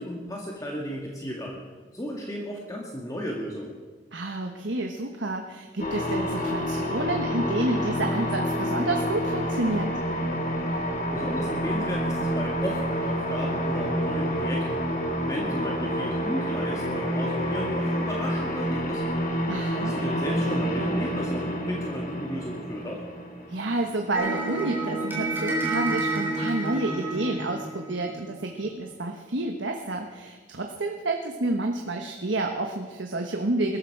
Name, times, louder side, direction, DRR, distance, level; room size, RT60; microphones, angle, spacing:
voice 1, 0.0-1.6 1.9-3.8 10.7-14.8 15.2-19.1 19.7-23.0, equal, 20° left, -1 dB, 1.9 m, -34 dB
voice 2, 4.1-9.9 19.5-19.9 23.5-33.8, right 2 dB, 80° right, 3 dB, 1.3 m, -29 dB
sound 1, 5.8-24.1, equal, 45° left, 2.9 m, -28 dB
sound 2, 24.1-28.4, right 2 dB, 10° right, 3.6 m, -29 dB
21.5 x 13.0 x 4.8 m, 1.4 s
head